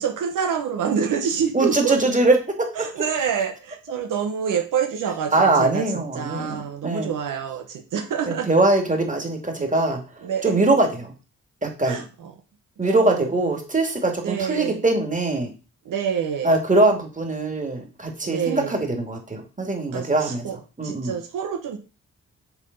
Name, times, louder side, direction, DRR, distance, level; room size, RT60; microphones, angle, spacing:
voice 1, 0.0-2.0 2.8-5.3 5.6-5.8 6.1-8.5 10.2-10.6 11.8-12.3 12.8-13.3 14.2-14.8 15.8-16.5 18.2-18.8 19.9-20.6 20.8-21.8, right 7 dB, 80° right, 5 dB, 1.0 m, -27 dB
voice 2, 1.5-2.9 5.3-7.1 8.3-10.0 10.4-11.1 11.6-12.0 12.8-15.5 16.4-20.5 20.8-21.1, right 2 dB, 25° right, 2 dB, 2.3 m, -22 dB
7.2 x 3.8 x 5.3 m, 0.34 s
cardioid pair, 55°, 31 cm